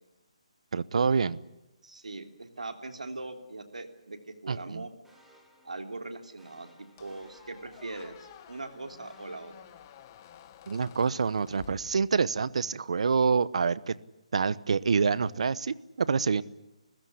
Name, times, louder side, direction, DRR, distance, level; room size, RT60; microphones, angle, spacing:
voice 1, 0.7-1.4 4.5-4.8 10.7-13.9 14.3-16.4, right 5 dB, 65° right, 19 dB, 0.9 m, -27 dB
voice 2, 1.8-4.9 5.6-9.5, right 2 dB, 90° right, 6 dB, 3.2 m, -41 dB
sound 1, 5.0-10.4, right 1 dB, 5° right, 3.9 m, -60 dB
Squeak, 7.0-12.5, left 11 dB, 30° left, 1.3 m, -52 dB
26.5 x 15.5 x 9.9 m, 0.95 s
hypercardioid pair, 155°, 4 cm